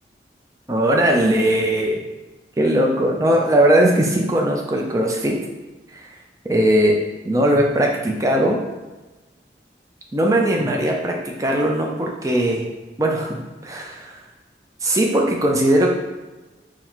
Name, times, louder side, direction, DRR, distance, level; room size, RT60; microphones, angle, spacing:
voice 1, 0.7-2.0 2.6-5.4 5.9-6.1 6.4-7.0 7.2-8.6 10.1-12.6 13.0-14.1 14.8-15.9, right 1 dB, 20° right, 0 dB, 0.4 m, -19 dB
4.0 x 2.1 x 4.4 m, 1.1 s
head